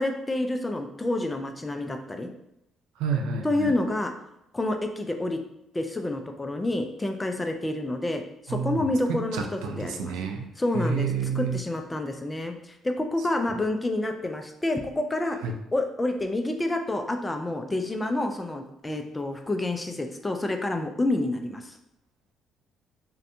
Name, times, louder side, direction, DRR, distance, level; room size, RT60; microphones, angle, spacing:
voice 1, 0.0-2.3 3.4-4.1 4.5-5.4 5.7-10.2 10.6-12.5 12.8-15.4 15.7-21.7, left 2 dB, 15° left, 5 dB, 0.3 m, -28 dB
voice 2, 3.0-3.8 8.5-10.5 10.7-11.6 15.4-15.5, right 5 dB, 90° right, 3 dB, 0.3 m, -29 dB
2.6 x 2.1 x 2.5 m, 0.83 s
cardioid pair, 95°, 0 cm